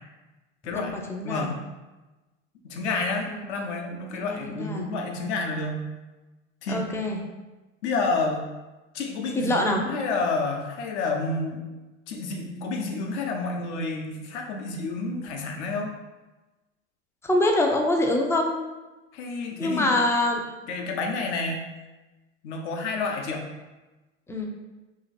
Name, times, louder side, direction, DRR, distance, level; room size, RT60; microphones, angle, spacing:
voice 1, 0.7-1.5 3.3-3.4 4.1-4.9 6.7-7.2 9.3-9.8 17.2-18.5 19.6-20.4 24.3-24.5, left 1 dB, 10° left, 1 dB, 0.4 m, -25 dB
voice 2, 1.2-1.6 2.6-5.8 6.6-6.9 7.8-8.5 8.9-11.6 12.1-15.9 19.1-19.9 20.7-21.7 22.4-23.5, left 3 dB, 65° left, 2 dB, 0.8 m, -29 dB
2.9 x 2.5 x 4.0 m, 1.1 s
hypercardioid pair, 90°, 36 cm